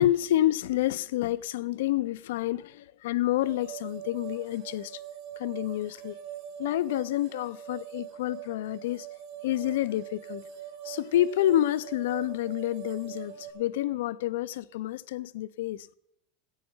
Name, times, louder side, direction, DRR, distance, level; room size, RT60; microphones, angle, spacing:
voice 1, 0.0-5.0 5.4-6.1 6.6-9.1 9.4-10.5 10.8-15.9, left 13 dB, 85° left, 0.4 m, -28 dB
sound 1, 3.4-13.5, right 10 dB, 50° right, 4.0 m, -43 dB
14.0 x 8.6 x 5.4 m
supercardioid pair, 180°, 0 cm